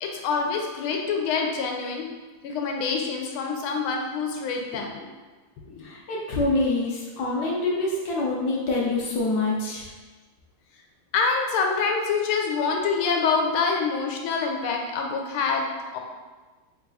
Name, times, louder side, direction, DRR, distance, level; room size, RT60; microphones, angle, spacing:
voice 1, 0.0-2.1 2.4-5.1 5.7-5.9 11.1-15.6 15.9-16.0, left 5 dB, 90° left, 2 dB, 1.5 m, -26 dB
voice 2, 5.8-9.9, left 2 dB, 70° left, -3 dB, 1.0 m, -26 dB
3.7 x 2.3 x 4.0 m, 1.3 s
omnidirectional pair, 2.3 m